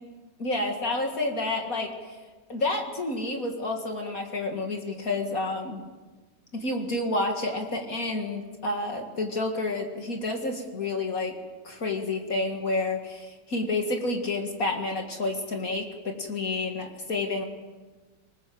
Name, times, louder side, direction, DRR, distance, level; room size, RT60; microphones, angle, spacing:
voice 1, 0.4-1.9 2.5-5.8 6.5-11.3 11.6-17.4, left 2 dB, 55° left, 3 dB, 2.6 m, -29 dB
26.0 x 20.0 x 7.8 m, 1.3 s
omnidirectional pair, 1.8 m